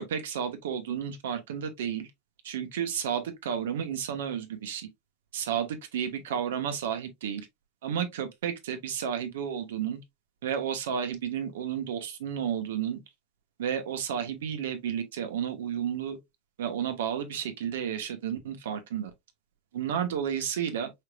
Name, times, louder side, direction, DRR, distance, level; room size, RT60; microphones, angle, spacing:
voice 1, 0.0-2.1 2.4-4.9 5.3-7.5 7.8-10.0 10.4-13.0 13.6-16.2 16.6-19.1 19.7-20.9, right 8 dB, 80° right, 1.2 m, -32 dB
5.6 x 3.3 x 2.3 m
hypercardioid pair, 95°, 0 cm